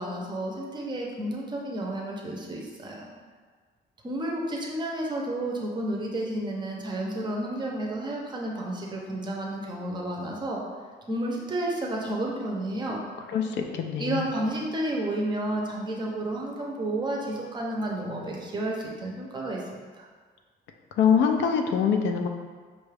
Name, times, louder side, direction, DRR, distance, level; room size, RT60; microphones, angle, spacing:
voice 1, 0.0-3.1 4.0-10.6 11.1-13.0 13.9-19.6 20.0-20.1, right 1 dB, 25° right, -1 dB, 0.6 m, -31 dB
voice 2, 13.3-14.3 21.0-22.3, left 7 dB, 75° left, 4 dB, 0.4 m, -24 dB
5.2 x 2.3 x 3.3 m, 1.5 s
cardioid pair, 155°, 18 cm